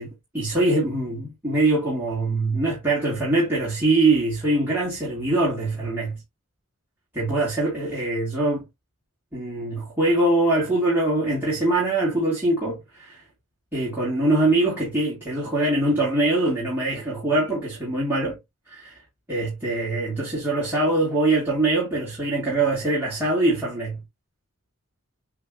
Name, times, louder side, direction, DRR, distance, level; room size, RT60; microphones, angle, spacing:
voice 1, 0.0-6.2 7.1-8.7 9.3-13.2 13.7-18.4 18.7-19.0 19.3-24.0, right 2 dB, 10° right, 2.8 m, -23 dB
8.4 x 3.5 x 3.1 m
head